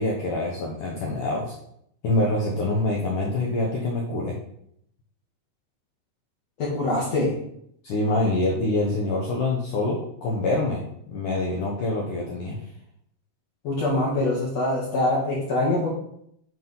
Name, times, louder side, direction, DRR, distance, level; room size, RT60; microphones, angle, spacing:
voice 1, 0.0-1.5 2.0-4.4 7.8-12.6, left 2 dB, 75° left, -1 dB, 1.9 m, -25 dB
voice 2, 6.6-7.4 13.6-15.9, left 2 dB, 55° left, -5 dB, 1.9 m, -24 dB
8.4 x 6.1 x 5.5 m, 0.73 s
omnidirectional pair, 5.4 m